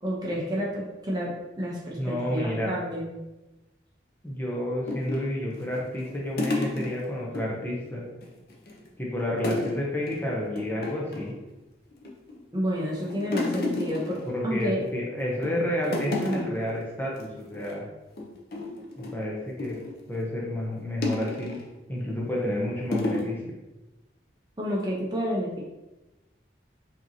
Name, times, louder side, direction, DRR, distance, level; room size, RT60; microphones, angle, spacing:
voice 1, 0.0-3.1 12.5-14.8 24.6-25.6, equal, 25° right, -3 dB, 0.7 m, -30 dB
voice 2, 2.0-2.8 4.2-8.0 9.0-11.3 14.3-17.8 19.0-19.7 20.1-21.5 21.9-23.5, left 1 dB, 10° left, -4 dB, 0.7 m, -30 dB
sound 1, 4.9-7.5 7.8-7.9 8.2-8.9 9.4-9.8 10.1-10.2 10.6-11.4 11.9-12.4 12.8-14.9 15.3-15.6 15.8-16.7 17.1-17.2 17.5-17.7 18.2-20.0 21.0-21.7 22.3-22.5 22.9-23.3, left 2 dB, 55° left, 0.6 m, -31 dB
5.1 x 2.8 x 2.8 m, 1.0 s
head